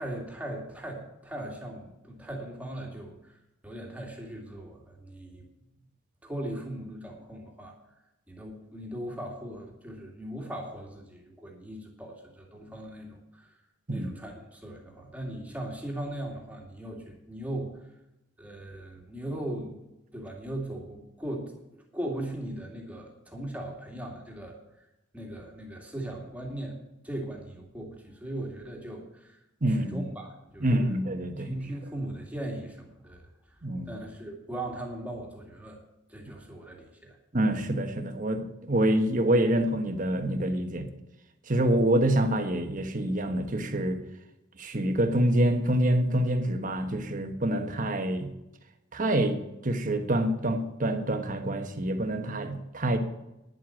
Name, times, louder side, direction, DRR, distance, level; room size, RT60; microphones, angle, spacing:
voice 1, 0.0-3.4 3.6-5.4 6.2-7.8 8.3-13.6 13.9-17.8 18.4-19.7 20.1-21.5 21.9-24.9 25.1-26.8 27.0-29.4 29.7-31.0 31.4-33.3 33.9-35.8 36.1-37.2, right 1 dB, 5° right, 0 dB, 2.2 m, -38 dB
voice 2, 29.6-30.0 30.6-31.5 33.6-33.9 37.3-40.9 41.5-44.0 44.6-48.3 48.9-53.0, right 1 dB, 40° right, 6 dB, 1.3 m, -26 dB
10.5 x 7.7 x 7.5 m, 0.92 s
head